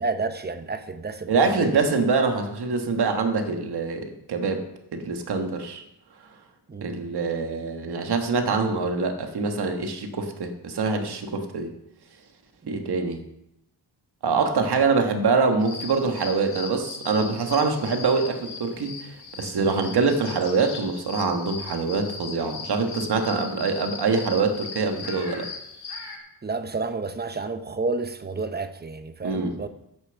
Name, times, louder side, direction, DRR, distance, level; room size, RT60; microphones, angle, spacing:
voice 1, 0.0-1.3 1.6-1.8 6.7-7.1 12.6-12.9 19.9-20.0 26.4-29.7, right 3 dB, 25° right, 10 dB, 0.8 m, -30 dB
voice 2, 1.3-4.6 4.9-5.8 6.8-11.7 12.7-13.2 14.2-25.5 29.2-29.6, right 4 dB, 80° right, 5 dB, 1.5 m, -24 dB
sound 1, 15.6-26.2, left 4 dB, 80° left, 2.1 m, -39 dB
10.5 x 6.9 x 7.0 m, 0.81 s
wide cardioid pair, 145°, 39 cm